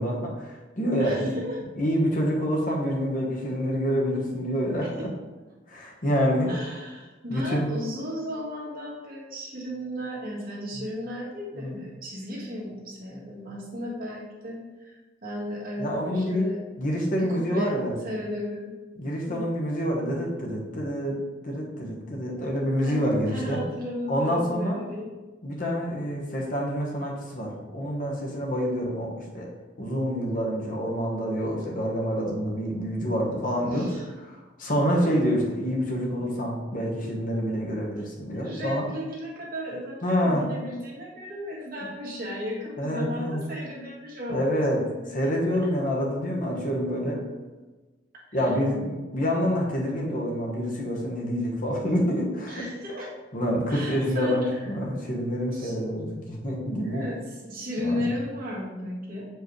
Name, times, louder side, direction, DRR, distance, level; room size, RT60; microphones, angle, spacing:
voice 1, 0.0-1.3 1.7-5.1 5.7-6.5 7.3-7.7 10.7-10.8 11.6-11.8 15.8-16.5 16.8-18.0 19.0-23.6 24.1-24.8 25.4-29.5 29.8-38.9 40.0-40.5 42.8-43.4 44.3-44.8 45.1-47.2 48.3-52.6 53.3-57.1 57.9-58.1, equal, 45° left, -2 dB, 1.1 m, -27 dB
voice 2, 1.0-1.6 4.8-4.9 6.5-16.6 17.2-17.7 18.0-18.8 19.3-19.5 22.8-23.0 23.3-25.1 33.7-34.0 38.3-45.1 48.3-48.4 52.5-53.1 53.7-54.7 55.5-55.8 56.8-59.3, left 1 dB, 50° right, -5 dB, 1.7 m, -35 dB
6.8 x 4.7 x 3.1 m, 1.2 s
head